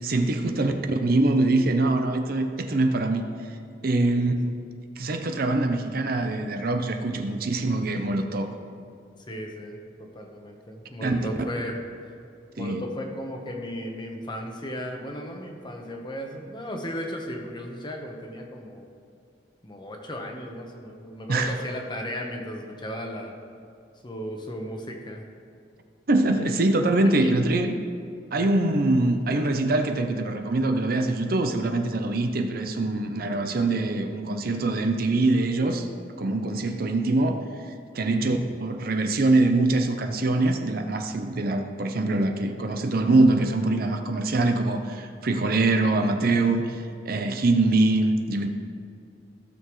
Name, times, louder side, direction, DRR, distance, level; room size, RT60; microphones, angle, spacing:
voice 1, 0.0-3.3 3.8-4.3 5.0-8.5 11.0-11.3 12.6-12.8 21.3-21.5 26.1-27.7 28.3-35.9 36.2-37.4 37.9-48.5, right 2 dB, 55° right, 6 dB, 0.7 m, -23 dB
voice 2, 9.3-11.8 12.6-18.9 19.6-23.4 24.0-25.2 26.3-26.5 27.0-27.3 28.3-28.6 38.1-38.4, equal, 25° left, 2 dB, 1.0 m, -36 dB
15.5 x 6.8 x 3.2 m, 2.5 s
head